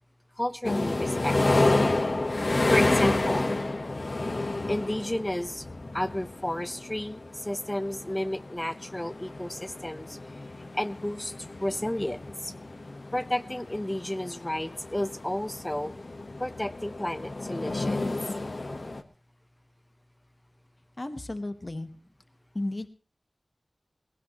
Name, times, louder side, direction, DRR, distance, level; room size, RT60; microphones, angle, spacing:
voice 1, 0.4-1.7 2.7-3.6 4.7-5.6 5.9-10.2 10.7-11.3 11.6-12.5 13.1-15.9 16.4-18.0, left 1 dB, 20° left, 13 dB, 0.8 m, -32 dB
sound 1, 0.6-19.0, left 2 dB, 65° left, 1.1 m, -30 dB
voice 2, 21.0-21.9 22.5-22.9, left 2 dB, 45° left, 9 dB, 1.1 m, -33 dB
19.0 x 17.0 x 3.0 m, 0.36 s
wide cardioid pair, 70°, 0 cm